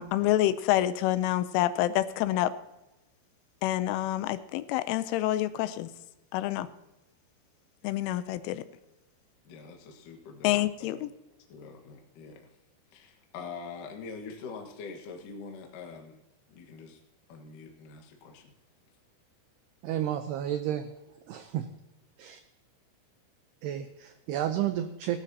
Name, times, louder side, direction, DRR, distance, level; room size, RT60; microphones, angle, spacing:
voice 1, 0.0-2.5 3.6-5.9 6.3-6.7 7.8-8.6 10.4-11.1, left 14 dB, 90° left, 12 dB, 3.2 m, -27 dB
voice 2, 9.4-11.1 11.5-12.5 12.9-16.2 16.5-17.0 17.3-18.5, left 4 dB, 60° left, 2 dB, 2.5 m, -44 dB
voice 3, 19.8-20.9 21.3-21.7 22.2-22.4 23.6-25.2, right 11 dB, 90° right, 8 dB, 2.3 m, -31 dB
18.0 x 12.5 x 2.8 m, 0.97 s
omnidirectional pair, 5.6 m